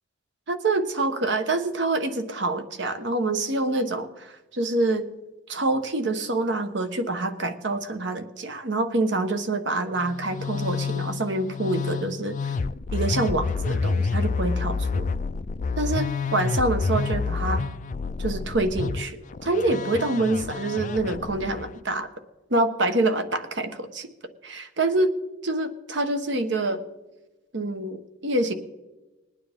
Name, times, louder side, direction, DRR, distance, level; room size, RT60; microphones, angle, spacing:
voice 1, 0.5-5.1 5.5-12.4 12.9-15.1 15.8-17.6 18.2-22.1 22.5-24.1 24.4-25.1 25.4-26.8 27.5-28.5, right 2 dB, 65° right, 8 dB, 1.0 m, -26 dB
Musical instrument, 10.0-21.7, left 4 dB, 40° left, 0.3 m, -28 dB
20.5 x 9.6 x 3.5 m, 1.1 s
head